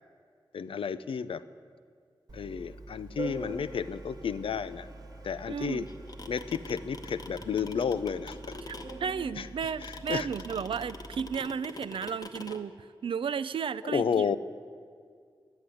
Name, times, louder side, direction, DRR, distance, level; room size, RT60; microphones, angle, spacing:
voice 1, 0.5-1.4 2.3-4.9 5.2-5.9 6.3-8.5 9.4-9.5 9.8-10.3 13.8-14.4, left 6 dB, 80° left, 14 dB, 0.4 m, -32 dB
Organ, 2.3-11.4, right 2 dB, 45° right, 1.2 m, -45 dB
voice 2, 5.5-5.9 8.6-8.7 9.0-12.8 13.0-14.3, right 6 dB, 75° right, 16 dB, 0.4 m, -33 dB
sound 1, 5.9-12.6, left 3 dB, 45° left, 0.9 m, -43 dB
10.5 x 7.9 x 9.8 m, 2.1 s
wide cardioid pair, 95°, 9 cm